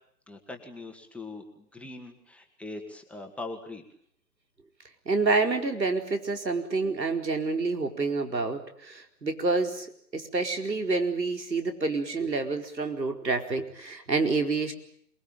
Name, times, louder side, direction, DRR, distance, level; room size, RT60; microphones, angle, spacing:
voice 1, 0.3-3.8, left 2 dB, 5° left, 3 dB, 2.0 m, -41 dB
voice 2, 5.1-9.9 10.1-14.7, right 3 dB, 85° right, 6 dB, 4.7 m, -28 dB
27.5 x 21.0 x 9.1 m, 0.66 s
figure-of-eight pair, 135°, 49 cm